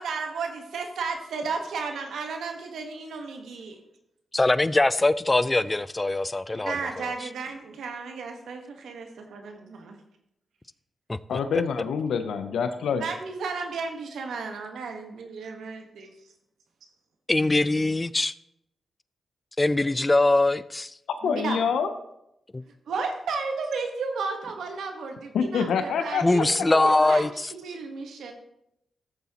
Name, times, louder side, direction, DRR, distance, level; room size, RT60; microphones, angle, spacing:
voice 1, 0.0-3.8 6.5-10.0 13.0-16.1 21.2-21.6 22.9-28.3, right 4 dB, 85° right, 1.2 m, -33 dB
voice 2, 4.3-7.3 11.1-11.4 17.3-18.3 19.6-21.0 22.5-22.6 26.2-27.5, left 2 dB, 25° left, 0.4 m, -23 dB
voice 3, 11.3-13.0 21.2-21.9 25.3-26.4 26.8-27.1, left 6 dB, 85° left, 0.5 m, -26 dB
14.0 x 7.0 x 2.9 m
cardioid pair, 55°, 0 cm